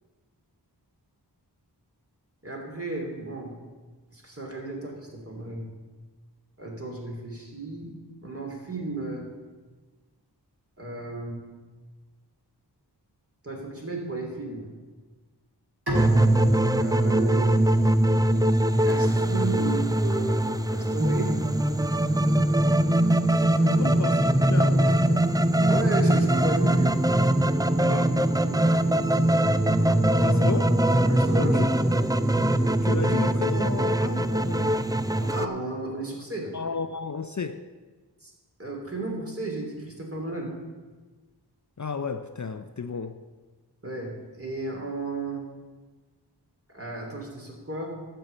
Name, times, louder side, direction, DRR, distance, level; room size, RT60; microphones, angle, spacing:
voice 1, 2.4-3.5 4.1-5.7 6.6-7.9 8.2-9.3 10.8-11.4 13.4-14.7 16.7-17.6 18.8-21.4 23.5-23.8 25.7-26.9 27.9-28.6 28.9-29.3 31.1-31.8 35.2-36.5 38.2-38.3 38.6-40.5 43.8-45.4 46.7-47.9, right 2 dB, 35° right, 3.0 m, -34 dB
sound 1, 15.9-35.5, right 1 dB, 10° right, 0.4 m, -22 dB
Bowed string instrument, 15.9-19.1, equal, 70° right, 2.7 m, -35 dB
voice 2, 23.6-24.2 24.5-25.4 27.9-28.2 30.1-30.8 31.3-31.7 32.8-34.8 36.5-37.7 41.8-43.2, left 5 dB, 45° left, 0.6 m, -33 dB
12.5 x 5.8 x 8.3 m
wide cardioid pair, 50°, 41 cm